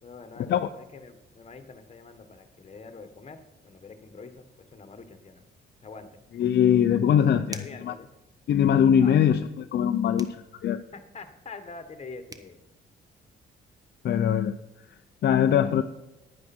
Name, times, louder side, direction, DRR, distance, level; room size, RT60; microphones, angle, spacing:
voice 1, 0.0-5.5 5.8-6.2 7.5-8.1 9.0-9.4 10.9-12.6, left 4 dB, 30° left, 9 dB, 1.5 m, -45 dB
voice 2, 6.4-7.9 8.5-10.3 10.6-10.8 14.0-14.5 15.2-15.8, left 9 dB, 60° left, 8 dB, 0.6 m, -21 dB
sound 1, 7.5-7.9 10.2-10.4 12.0-12.1 12.3-12.5, right 2 dB, 20° right, 1.0 m, -42 dB
10.0 x 9.7 x 4.4 m, 1.0 s
cardioid pair, 90°, 20 cm